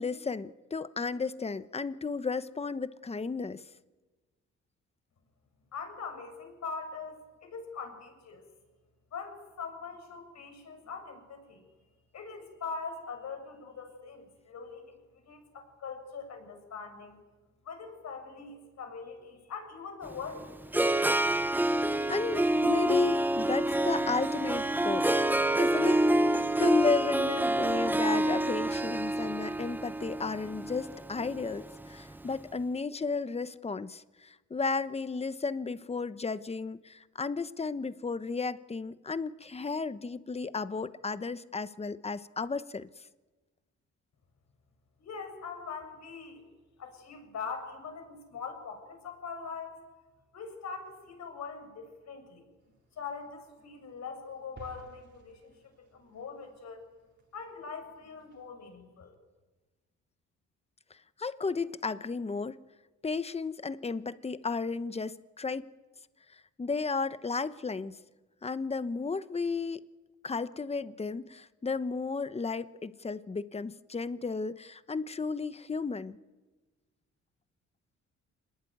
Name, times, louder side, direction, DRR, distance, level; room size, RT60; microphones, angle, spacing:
voice 1, 0.0-3.6 22.1-25.1 25.6-42.9 61.2-62.6 63.0-65.7 66.6-68.0 68.4-69.8 70.2-76.2, left 4 dB, 20° left, 1.0 m, -33 dB
voice 2, 5.7-7.2 7.4-8.4 9.1-11.6 12.1-15.0 15.3-17.2 17.6-20.5 45.0-46.5 46.8-49.8 50.3-52.5 53.0-56.8 57.3-59.1, left 5 dB, 60° left, 7.1 m, -42 dB
Harp, 20.1-32.2, right 1 dB, 5° right, 0.8 m, -28 dB
sound 1, 52.6-58.5, right 3 dB, 40° right, 4.2 m, -58 dB
26.5 x 20.5 x 9.4 m
cardioid pair, 90°, 30 cm